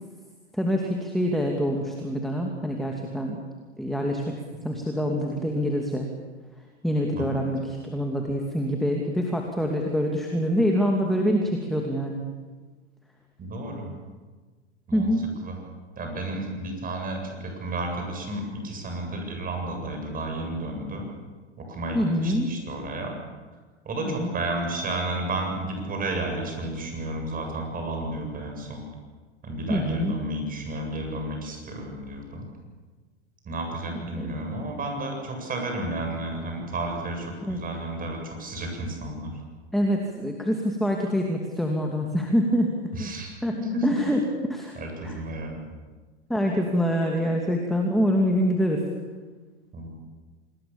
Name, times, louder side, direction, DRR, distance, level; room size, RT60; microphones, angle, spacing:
voice 1, 0.5-3.4 3.8-6.1 6.8-12.2 14.9-15.3 21.9-22.5 24.0-24.3 29.7-30.2 34.2-34.3 37.4-37.7 39.7-42.7 43.0-43.1 43.4-43.6 43.8-44.2 44.5-44.7 45.0-45.2 46.3-48.8, equal, ahead, 1 dB, 2.6 m, -25 dB
voice 2, 13.4-13.9 14.9-15.1 15.4-15.6 16.0-21.1 21.6-23.2 23.8-28.8 29.4-32.4 33.4-39.3 42.9-43.9 44.8-45.6 49.7-49.9, right 1 dB, 25° right, 2 dB, 7.8 m, -32 dB
27.0 x 20.5 x 7.2 m, 1.4 s
hypercardioid pair, 105°, 35 cm